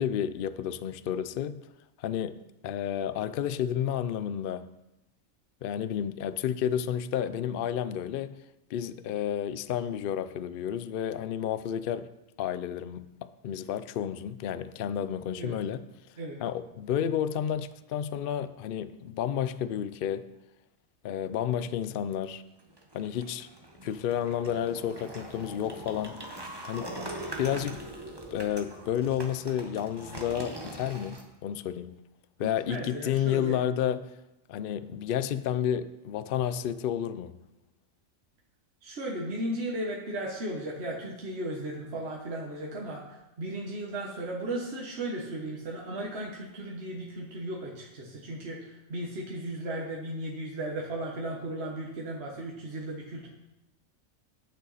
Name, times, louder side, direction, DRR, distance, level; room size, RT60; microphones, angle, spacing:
voice 1, 0.0-1.6 2.0-4.7 5.6-8.4 8.7-12.1 12.4-15.9 16.4-20.3 21.0-22.4 22.9-23.5 23.8-26.2 26.7-26.9 27.4-27.8 28.3-32.0 32.4-34.1 34.5-37.3, left 9 dB, 65° left, 0.5 m, -31 dB
sound 1, 22.6-31.2, right 1 dB, 20° right, 1.2 m, -42 dB
voice 2, 32.4-33.6 38.8-53.3, right 1 dB, 50° right, 1.6 m, -36 dB
10.0 x 9.1 x 4.1 m
omnidirectional pair, 1.4 m